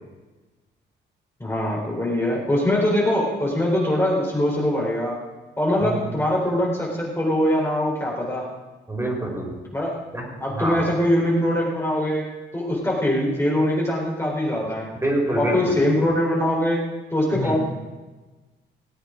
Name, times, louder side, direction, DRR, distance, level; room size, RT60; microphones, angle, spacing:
voice 1, 1.4-5.2 5.6-8.5 9.7-10.0 10.4-12.3 12.5-14.9 15.4-16.8 17.1-17.6, left 1 dB, 10° left, -4 dB, 3.6 m, -22 dB
voice 2, 8.9-9.7 10.1-10.2 10.5-10.8 15.0-15.8 17.3-17.6, right 1 dB, 15° right, -1 dB, 4.4 m, -26 dB
18.5 x 8.4 x 5.0 m, 1.2 s
cardioid pair, 90°, 20 cm